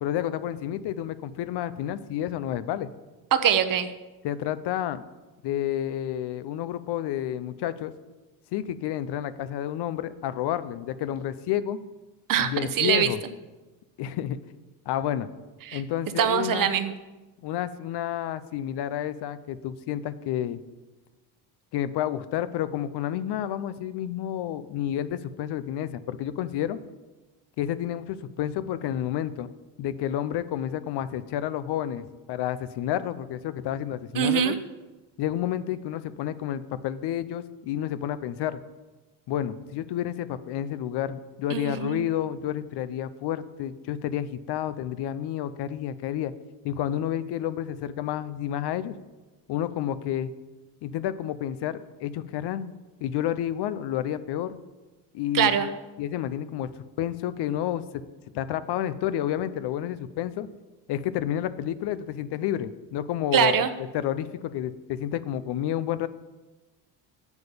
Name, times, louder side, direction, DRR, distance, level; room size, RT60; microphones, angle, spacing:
voice 1, 0.0-2.9 4.2-5.0 5.4-7.9 8.5-11.8 12.4-13.2 14.0-14.4 14.9-15.3 15.7-16.7 17.4-20.6 21.7-26.8 27.6-29.5 29.8-34.5 35.2-38.6 39.3-46.3 46.6-49.0 49.5-50.3 50.8-52.7 53.0-54.6 55.1-55.5 56.0-56.7 57.0-58.0 58.3-60.5 60.9-63.7 63.9-66.1, left 11 dB, 60° left, 14 dB, 0.7 m, -30 dB
voice 2, 3.3-3.9 12.3-13.1 15.6-15.8 16.2-16.9 34.1-34.6 41.5-42.0 55.3-55.7 63.3-63.7, right 9 dB, 45° right, 11 dB, 0.9 m, -23 dB
8.2 x 7.0 x 6.8 m, 1.2 s
cardioid pair, 100°, 46 cm